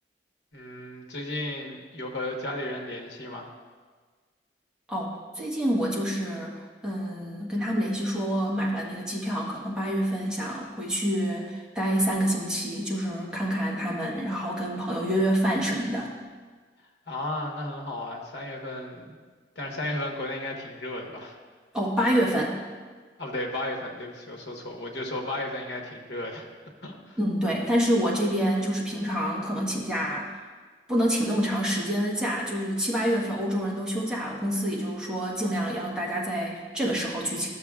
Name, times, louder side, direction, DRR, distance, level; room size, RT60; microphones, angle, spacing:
voice 1, 0.5-3.5 17.1-19.2 19.5-21.4 23.2-26.5 26.8-27.2, left 1 dB, 75° left, 0 dB, 1.2 m, -34 dB
voice 2, 4.9-16.1 21.7-22.6 27.2-30.3 30.9-37.5, equal, 5° right, -5 dB, 1.3 m, -27 dB
13.0 x 6.9 x 2.4 m, 1.5 s
head